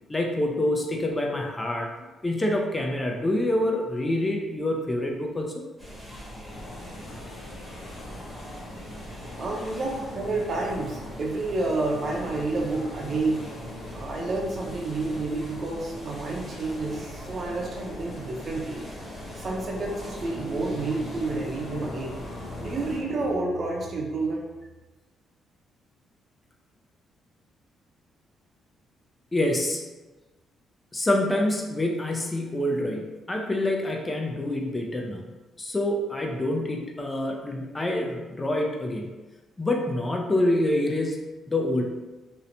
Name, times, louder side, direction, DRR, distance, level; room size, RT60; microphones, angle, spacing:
voice 1, 0.1-1.9 2.2-5.6 9.5-9.6 29.3-29.8 30.9-35.2 35.6-39.1 39.6-41.8, left 1 dB, 20° left, 1 dB, 0.4 m, -26 dB
sound 1, 5.8-23.0, equal, 5° right, 1.0 m, -40 dB
sound 2, 6.5-23.4, left 2 dB, 90° left, 0.4 m, -45 dB
voice 2, 9.4-13.4 13.9-18.8 19.4-22.2 22.6-24.4, right 2 dB, 50° right, 0 dB, 0.6 m, -29 dB
2.6 x 2.1 x 2.8 m, 1.2 s
cardioid pair, 90°, 0 cm